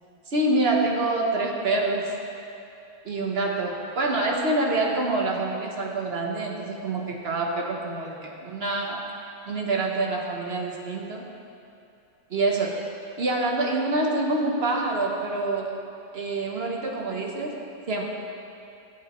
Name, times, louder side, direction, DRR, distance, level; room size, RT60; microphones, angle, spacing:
voice 1, 0.3-2.2 3.0-9.0 9.5-11.3 12.3-12.8 13.2-15.8 16.1-17.6 17.9-18.0, right 2 dB, 45° right, -1 dB, 1.2 m, -26 dB
15.5 x 8.1 x 3.1 m, 2.6 s
omnidirectional pair, 1.6 m